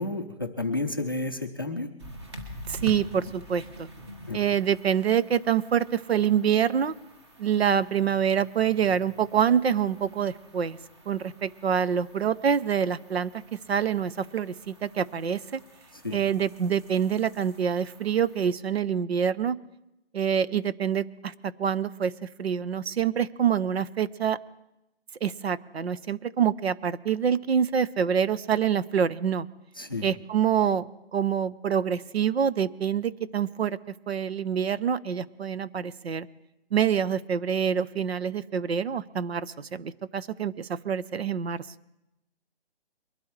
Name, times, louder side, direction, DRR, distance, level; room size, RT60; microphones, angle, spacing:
voice 1, 0.0-1.9 4.3-4.4 16.0-16.2 29.8-30.1, left 2 dB, 20° left, 7 dB, 0.5 m, -31 dB
sound 1, 2.0-18.5, equal, 25° right, 1.5 m, -47 dB
voice 2, 2.7-3.9 4.3-7.0 7.4-10.8 11.1-15.6 16.1-19.6 20.1-24.4 25.2-29.5 30.0-33.8 34.1-36.3 36.7-41.7, right 8 dB, 75° right, 16 dB, 0.7 m, -26 dB
23.0 x 12.5 x 3.2 m, 0.88 s
hypercardioid pair, 175°, 32 cm